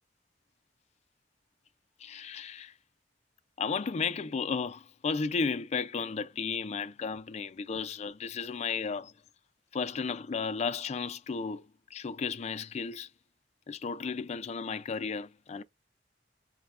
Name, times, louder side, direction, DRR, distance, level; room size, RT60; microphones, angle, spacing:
voice 1, 2.0-2.7 3.6-9.1 9.7-13.1 13.7-15.6, left 5 dB, 40° left, 0.3 m, -34 dB
5.3 x 2.2 x 2.4 m
head